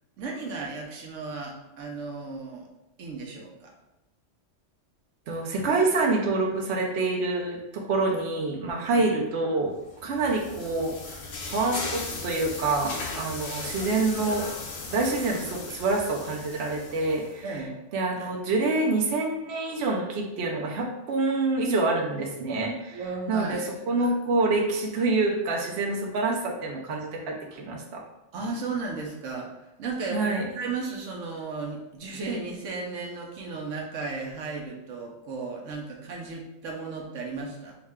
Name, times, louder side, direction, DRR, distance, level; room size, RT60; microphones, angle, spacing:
voice 1, 0.2-2.7 3.0-3.7 9.0-9.1 17.4-17.8 22.9-23.7 28.3-29.5 29.8-37.8, right 4 dB, 85° right, 0 dB, 1.1 m, -35 dB
voice 2, 5.3-9.7 10.0-11.2 11.4-14.5 14.9-17.4 17.9-23.0 23.3-28.0 30.1-30.5, right 3 dB, 65° right, 0 dB, 1.0 m, -27 dB
sound 1, 9.8-17.4, left 3 dB, 55° left, 0.7 m, -37 dB
4.8 x 2.1 x 3.5 m, 0.93 s
omnidirectional pair, 1.3 m